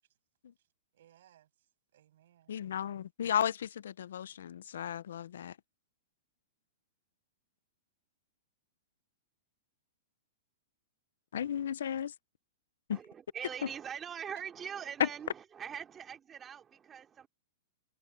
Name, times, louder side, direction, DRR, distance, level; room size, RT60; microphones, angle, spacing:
voice 1, 0.6-2.5 14.3-14.5 14.8-14.9, right 12 dB, 65° right, 7.9 m, -62 dB
voice 2, 2.5-5.6 11.3-12.1 12.9-13.0 13.6-13.7 15.0-15.1, left 9 dB, 80° left, 0.6 m, -34 dB
voice 3, 12.9-17.3, right 8 dB, 15° right, 2.8 m, -43 dB
hypercardioid pair, 160°, 0 cm